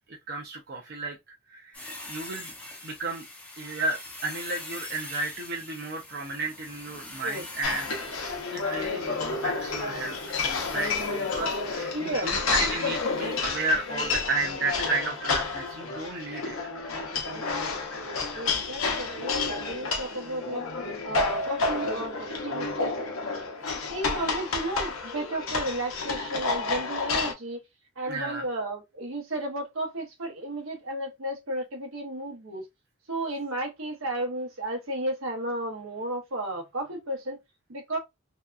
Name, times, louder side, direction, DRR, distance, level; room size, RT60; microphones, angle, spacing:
voice 1, 0.1-1.2 1.5-2.5 2.8-3.3 3.6-8.2 8.5-10.2 10.4-16.6 28.0-28.4, right 2 dB, 50° right, 0.5 m, -33 dB
sound 1, 1.7-11.9 13.2-13.4 13.7-13.8, left 2 dB, 5° left, 0.5 m, -44 dB
sound 2, 7.6-27.3, left 4 dB, 80° left, 0.7 m, -30 dB
voice 2, 11.9-12.3 18.3-20.6 21.0-23.1 23.9-27.6 28.0-32.6 33.1-37.4 37.7-38.0, right 1 dB, 80° right, 0.9 m, -33 dB
2.7 x 2.2 x 2.3 m
head